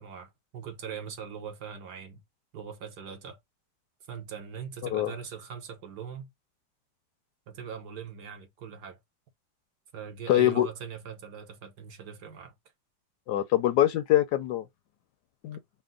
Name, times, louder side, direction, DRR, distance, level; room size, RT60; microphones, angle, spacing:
voice 1, 0.0-2.2 2.5-3.4 4.1-6.3 7.5-9.0 9.9-12.5, right 7 dB, 65° right, 1.6 m, -41 dB
voice 2, 10.3-10.7 13.3-14.6 15.4-15.6, left 13 dB, 75° left, 1.1 m, -23 dB
4.3 x 2.1 x 3.7 m
omnidirectional pair, 2.0 m